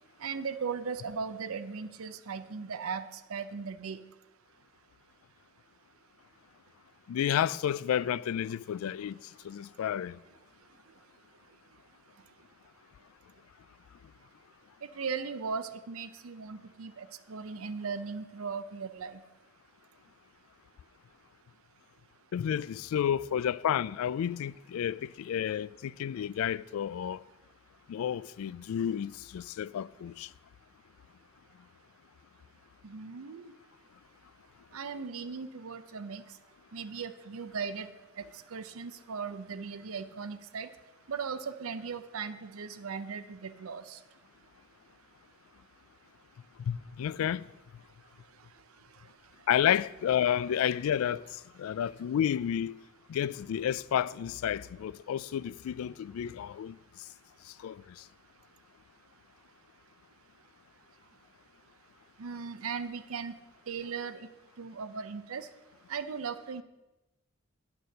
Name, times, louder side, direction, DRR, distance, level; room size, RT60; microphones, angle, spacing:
voice 1, 0.2-4.0 15.0-19.2 32.8-33.5 34.7-36.2 36.7-37.9 38.2-38.3 38.5-40.7 41.1-44.0 62.2-63.3 63.7-64.3 64.6-65.5 65.9-66.6, right 5 dB, 85° right, 0.6 m, -38 dB
voice 2, 7.1-10.2 22.3-27.2 27.9-30.3 46.7-47.5 49.5-52.8 53.1-56.8 57.5-58.0, left 9 dB, 85° left, 0.3 m, -31 dB
9.5 x 6.8 x 6.4 m
head